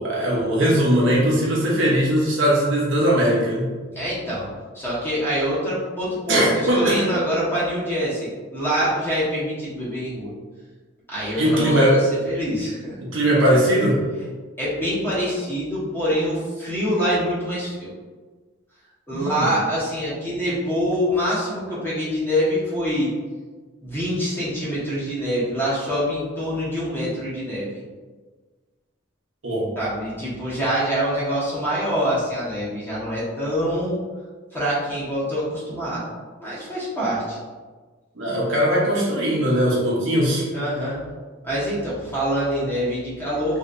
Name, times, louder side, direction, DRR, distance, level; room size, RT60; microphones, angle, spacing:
voice 1, 0.0-3.7 6.3-7.1 11.4-12.0 13.0-14.1 19.1-19.5 29.4-29.7 38.2-40.5, equal, 75° right, -4 dB, 0.9 m, -20 dB
voice 2, 3.9-4.5 4.7-10.3 11.1-13.0 14.6-17.9 19.1-23.1 23.8-27.7 29.8-34.0 34.5-36.0 36.4-37.4 40.5-41.0 41.4-43.6, equal, 10° left, -9 dB, 1.1 m, -25 dB
3.2 x 2.8 x 2.5 m, 1.4 s
head